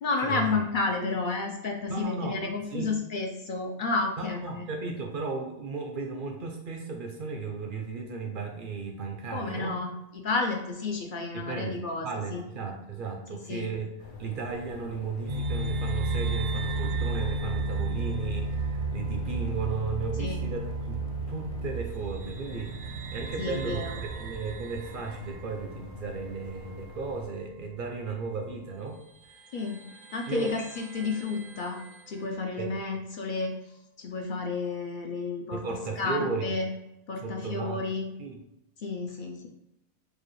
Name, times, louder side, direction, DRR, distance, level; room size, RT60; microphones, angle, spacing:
voice 1, 0.0-4.6 9.3-12.4 13.5-13.7 20.2-20.4 23.4-24.0 29.5-29.8 30.1-31.8 32.1-35.6 36.0-36.7 37.1-38.1 38.8-39.4, left 3 dB, 60° left, 2 dB, 0.6 m, -31 dB
voice 2, 1.9-2.4 2.7-2.9 4.2-9.8 11.3-13.9 14.2-29.0 30.3-30.6 32.6-32.7 35.5-36.6 37.2-37.8 38.2-38.4, right 4 dB, 60° right, 3 dB, 0.6 m, -35 dB
sound 1, 14.0-27.3, left 4 dB, 75° left, 1.0 m, -46 dB
sound 2, 15.3-27.2 27.5-27.6 28.6-28.7 29.2-32.3, right 3 dB, 85° right, 0.9 m, -33 dB
4.7 x 2.3 x 3.1 m, 0.87 s
omnidirectional pair, 1.1 m